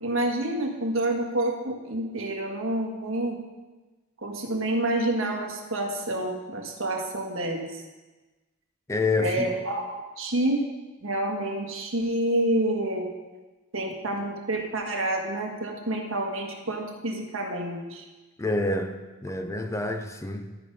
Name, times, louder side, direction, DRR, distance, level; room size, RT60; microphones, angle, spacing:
voice 1, 0.0-3.4 4.2-7.8 9.2-9.9 10.2-10.6 11.0-13.1 13.7-18.0, right 1 dB, 70° right, 1 dB, 1.5 m, -28 dB
voice 2, 8.9-9.5 18.4-20.6, left 2 dB, 15° left, 7 dB, 0.4 m, -28 dB
13.0 x 5.1 x 5.4 m, 1.2 s
head